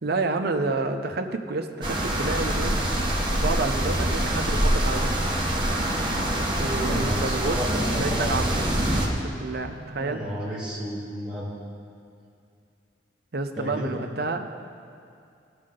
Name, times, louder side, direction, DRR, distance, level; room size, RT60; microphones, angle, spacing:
voice 1, 0.0-2.8 3.4-5.2 6.4-7.6 8.0-8.5 9.1-10.2 13.3-14.5, right 3 dB, 55° right, 6 dB, 0.6 m, -29 dB
sound 1, 1.8-9.1, right 1 dB, 25° right, 1.1 m, -25 dB
voice 2, 6.8-8.3 10.0-11.5 13.6-14.0, equal, 5° right, -9 dB, 2.3 m, -32 dB
16.0 x 6.5 x 3.8 m, 2.4 s
head